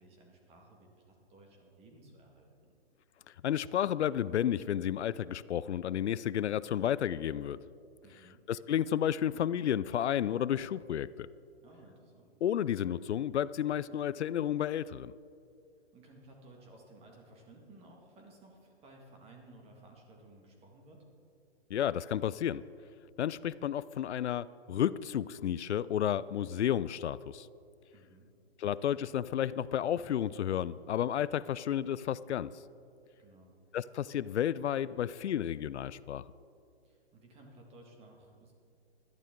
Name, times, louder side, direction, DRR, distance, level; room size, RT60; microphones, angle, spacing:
voice 1, 0.0-2.8 8.0-8.5 11.6-12.3 15.9-21.0 27.9-28.3 33.2-33.6 36.8-38.5, right 2 dB, 20° right, 1 dB, 1.9 m, -57 dB
voice 2, 3.4-7.6 8.5-11.3 12.4-15.1 21.7-22.6 23.2-27.5 28.6-32.5 33.7-36.2, left 10 dB, 90° left, 18 dB, 0.5 m, -32 dB
16.5 x 12.0 x 3.7 m, 2.5 s
hypercardioid pair, 145°, 33 cm